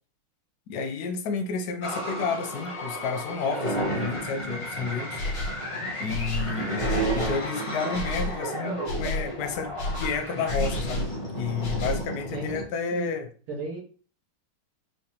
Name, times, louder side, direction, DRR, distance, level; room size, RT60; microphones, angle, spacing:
voice 1, 0.7-5.2 6.0-6.9 7.1-11.1 11.4-13.3, left 5 dB, 75° left, 4 dB, 0.9 m, -31 dB
sound 1, 1.8-12.6, right 1 dB, 35° left, 0.5 m, -32 dB
sound 2, 5.2-5.7 6.1-7.5 7.9-8.4 8.8-9.3 9.8-11.1 11.6-12.1, left 1 dB, 60° left, 1.5 m, -31 dB
voice 2, 12.3-13.1 13.5-13.8, right 3 dB, 85° right, -1 dB, 2.2 m, -35 dB
4.8 x 3.2 x 2.8 m, 0.39 s
omnidirectional pair, 2.4 m